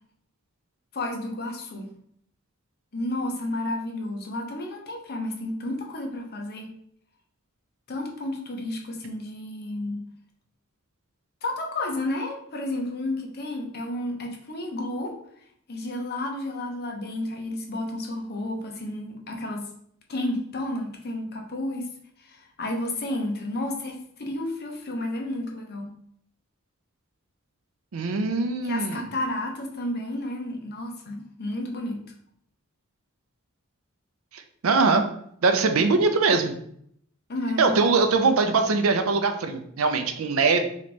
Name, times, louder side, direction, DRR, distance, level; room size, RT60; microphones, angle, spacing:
voice 1, 0.9-1.9 2.9-6.7 7.9-10.0 11.4-15.2 15.7-19.7 20.1-21.9 22.2-25.9 28.6-32.0 37.3-37.8, left 1 dB, 50° left, 1 dB, 0.8 m, -31 dB
voice 2, 27.9-29.1 34.3-35.0 35.4-36.5 37.6-40.6, right 4 dB, 70° right, 7 dB, 0.5 m, -22 dB
3.2 x 3.0 x 4.2 m, 0.68 s
head